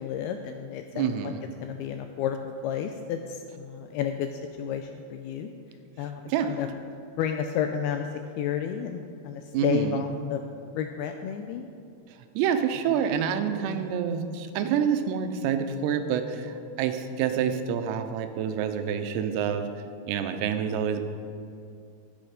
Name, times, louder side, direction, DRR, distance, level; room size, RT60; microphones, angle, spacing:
voice 1, 0.0-1.3 1.6-5.5 6.0-6.7 7.2-8.1 8.4-10.4 10.7-11.7 13.7-13.9, left 8 dB, 85° left, 5 dB, 2.3 m, -31 dB
voice 2, 0.9-1.4 6.3-6.6 9.5-10.0 12.4-19.7 20.1-21.0, right 7 dB, 85° right, 7 dB, 2.9 m, -27 dB
13.0 x 8.1 x 5.0 m, 2.5 s
omnidirectional pair, 4.9 m